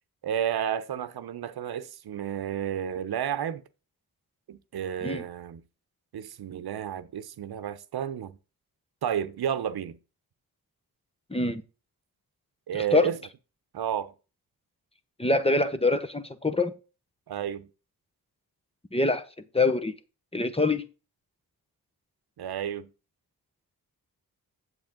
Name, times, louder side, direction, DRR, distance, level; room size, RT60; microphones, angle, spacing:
voice 1, 0.2-3.6 4.5-5.6 6.1-8.4 9.0-10.0 12.7-13.2 13.7-14.1 17.3-17.7 22.4-22.9, right 9 dB, 80° right, 0.9 m, -31 dB
voice 2, 11.3-11.6 12.9-13.1 15.2-16.8 18.9-19.3 19.5-19.9 20.3-20.8, left 2 dB, 15° left, 1.0 m, -24 dB
7.9 x 7.9 x 3.7 m
cardioid pair, 80°, 37 cm